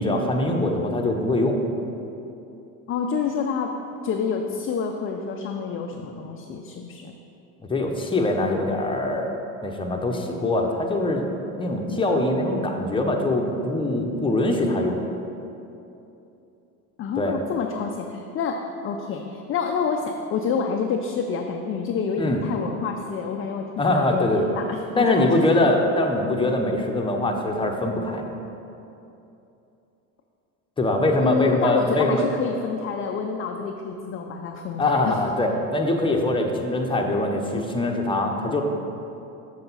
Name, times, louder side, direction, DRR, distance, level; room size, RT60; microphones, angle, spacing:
voice 1, 0.0-1.6 6.0-6.1 7.7-9.3 9.6-15.0 17.2-17.4 22.2-22.4 23.8-24.5 25.0-28.3 30.8-32.3 34.8-38.6, left 1 dB, 10° left, 1 dB, 0.9 m, -23 dB
voice 2, 2.9-3.8 4.0-7.1 17.0-25.4 31.2-35.2 35.5-35.6, left 6 dB, 30° left, 3 dB, 0.5 m, -28 dB
6.7 x 6.7 x 4.1 m, 2.8 s
hypercardioid pair, 80°, 44 cm